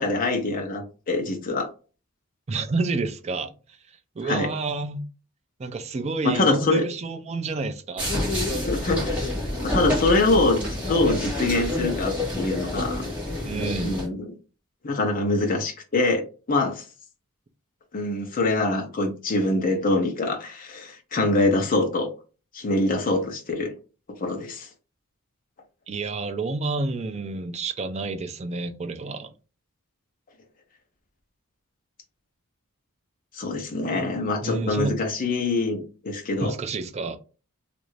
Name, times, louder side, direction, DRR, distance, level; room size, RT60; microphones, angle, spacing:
voice 1, 0.0-1.7 4.2-4.5 6.2-6.8 8.5-9.3 9.6-10.6 10.9-13.1 13.8-14.3 14.8-16.8 17.9-22.1 22.5-23.8 24.2-24.7 33.3-36.5, left 2 dB, 40° left, 0.7 m, -24 dB
voice 2, 2.5-3.8 4.2-5.0 5.6-8.1 13.5-14.0 25.9-29.3 33.9-34.2 34.4-35.0 36.4-37.2, right 3 dB, 30° right, 0.4 m, -29 dB
sound 1, 8.0-14.1, left 1 dB, 5° right, 1.8 m, -28 dB
3.2 x 2.5 x 3.1 m
head